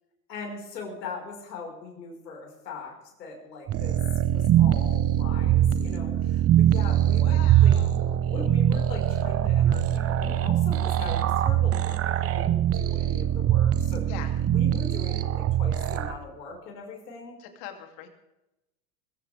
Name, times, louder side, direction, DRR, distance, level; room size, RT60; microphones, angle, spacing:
voice 1, 0.3-7.7 8.2-14.1 14.5-17.4, left 4 dB, 80° left, 0 dB, 5.3 m, -40 dB
sound 1, 3.7-16.2, right 11 dB, 30° right, 1.0 m, -23 dB
voice 2, 7.0-8.1 14.1-14.3 17.4-18.1, left 10 dB, 50° left, 4 dB, 3.0 m, -42 dB
21.5 x 14.5 x 3.5 m, 0.93 s
hypercardioid pair, 110°, 49 cm